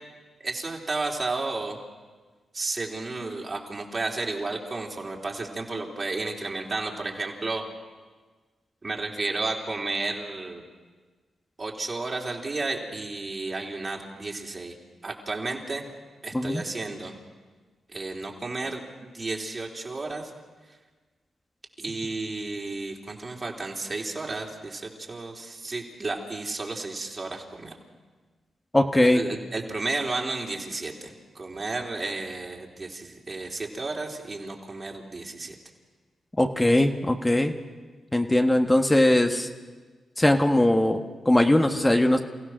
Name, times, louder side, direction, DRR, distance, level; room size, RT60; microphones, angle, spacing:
voice 1, 0.4-1.8 2.5-7.7 8.8-10.6 11.6-14.7 15.0-15.9 16.2-17.2 17.9-20.3 21.8-27.7 29.1-35.5, right 3 dB, 45° right, 0 dB, 3.8 m, -32 dB
voice 2, 28.7-29.2 36.4-37.5 38.1-39.5 40.2-42.2, left 1 dB, 20° left, 4 dB, 1.5 m, -20 dB
28.5 x 16.0 x 6.4 m, 1.4 s
supercardioid pair, 40°, 0 cm